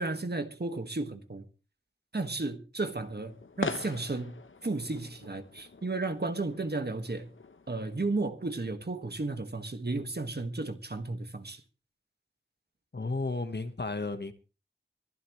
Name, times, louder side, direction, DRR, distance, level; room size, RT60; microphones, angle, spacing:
voice 1, 0.0-1.4 2.1-4.4 4.6-7.3 7.7-11.6, right 3 dB, 55° right, 1.8 m, -33 dB
sound 1, 2.9-8.0, left 4 dB, 75° left, 1.0 m, -42 dB
voice 2, 12.9-14.3, left 3 dB, 55° left, 1.4 m, -33 dB
24.0 x 11.0 x 3.2 m
wide cardioid pair, 50°, 20 cm